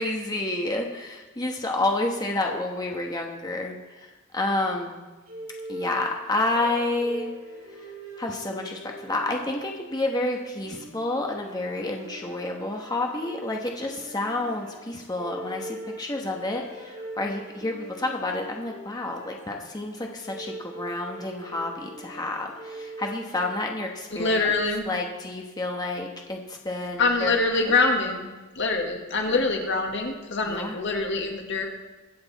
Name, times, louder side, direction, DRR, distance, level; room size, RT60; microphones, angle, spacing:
voice 1, 0.0-4.1 4.3-5.1 5.7-7.3 8.2-24.5 24.9-27.4 27.6-27.7 29.3-29.4 30.4-30.8, left 2 dB, 20° left, 1 dB, 1.2 m, -29 dB
sound 1, 5.3-23.8, right 1 dB, 45° right, 4.1 m, -42 dB
voice 2, 24.2-24.9 27.0-28.3 28.5-31.7, left 3 dB, 60° left, 2 dB, 1.8 m, -24 dB
22.0 x 8.0 x 4.1 m, 1.2 s
head